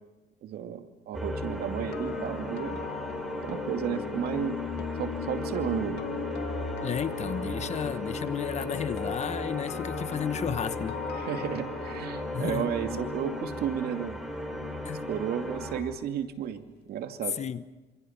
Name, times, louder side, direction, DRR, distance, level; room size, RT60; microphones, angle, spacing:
voice 1, 0.4-2.8 3.4-4.6 5.0-6.0 11.1-14.2 15.1-17.4, right 9 dB, 65° right, 6 dB, 2.5 m, -33 dB
sound 1, 1.1-15.8, left 1 dB, ahead, 4.7 m, -36 dB
sound 2, 1.7-15.8 16.0-16.3, left 9 dB, 75° left, 2.1 m, -40 dB
voice 2, 6.8-11.0 12.3-12.7 14.8-15.0 17.4-17.6, left 8 dB, 40° left, 12 dB, 1.2 m, -33 dB
27.0 x 26.5 x 5.9 m, 1.1 s
cardioid pair, 110°, 17 cm